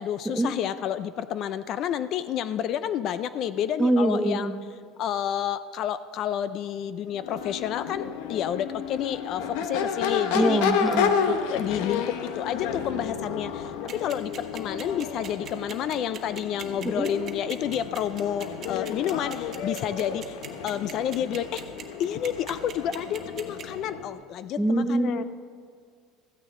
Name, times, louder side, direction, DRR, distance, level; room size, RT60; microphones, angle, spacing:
voice 1, 0.0-4.6 5.0-10.6 11.3-20.4 20.6-21.6 22.0-25.2, left 10 dB, 45° left, 14 dB, 0.4 m, -30 dB
voice 2, 3.8-4.6 10.3-11.1 16.8-17.1 24.6-25.2, right 1 dB, 5° right, 7 dB, 0.6 m, -24 dB
Crowd / Race car auto racing / Accelerating revving vroom, 7.1-24.2, left 7 dB, 75° left, 0.9 m, -31 dB
sound 1, 13.9-23.6, right 9 dB, 35° right, 1.2 m, -40 dB
15.5 x 14.0 x 3.7 m, 2.1 s
cardioid pair, 150°, 0 cm